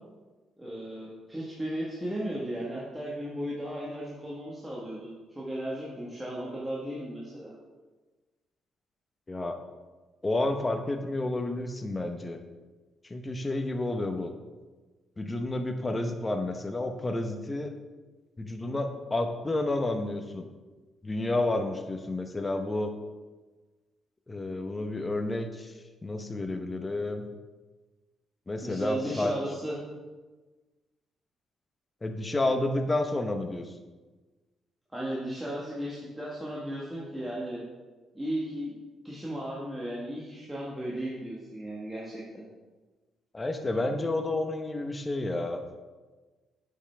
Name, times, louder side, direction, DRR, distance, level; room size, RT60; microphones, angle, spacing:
voice 1, 0.6-7.5 28.6-29.7 34.9-37.6 38.1-38.7 39.0-42.4, right 1 dB, 10° right, -6 dB, 1.5 m, -35 dB
voice 2, 9.3-9.6 10.2-12.4 13.0-14.3 15.2-17.7 18.4-20.5 21.0-22.9 24.3-25.7 26.0-27.3 28.5-29.3 32.0-33.7 43.3-45.6, left 2 dB, 20° left, 6 dB, 0.8 m, -30 dB
8.3 x 5.5 x 3.4 m, 1.3 s
cardioid pair, 90°, 0 cm